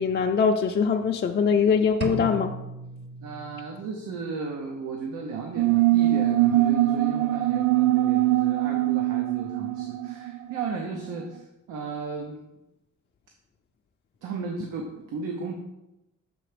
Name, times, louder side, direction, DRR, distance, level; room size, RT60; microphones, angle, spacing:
voice 1, 0.0-2.5, left 6 dB, 35° left, 3 dB, 0.5 m, -22 dB
sound 1, 2.0-4.0, right 3 dB, 35° right, 0.9 m, -35 dB
voice 2, 3.2-12.4 14.2-15.5, right 4 dB, 90° right, 2 dB, 0.8 m, -35 dB
sound 2, 5.6-10.8, right 15 dB, 65° right, 0.5 m, -22 dB
6.9 x 3.4 x 5.0 m, 0.93 s
cardioid pair, 90°, 30 cm